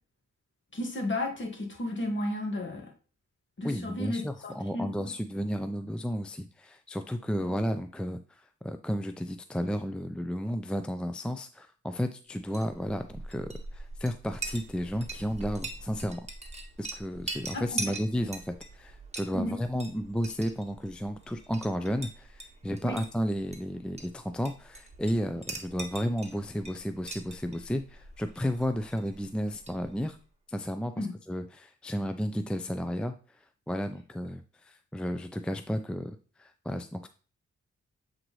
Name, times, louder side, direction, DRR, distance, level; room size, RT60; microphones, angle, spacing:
voice 1, 0.7-2.9 3.6-5.1 7.4-7.5 17.5-17.9 19.3-19.6 22.8-23.0 31.0-31.1, left 1 dB, 40° left, 3 dB, 1.8 m, -33 dB
voice 2, 3.6-16.3 16.8-30.2 30.5-37.1, equal, 5° left, 8 dB, 0.4 m, -33 dB
Chink clink, 12.4-30.2, right 3 dB, 20° right, 1.5 m, -43 dB
7.7 x 4.0 x 3.1 m, 0.38 s
cardioid pair, 55°, 29 cm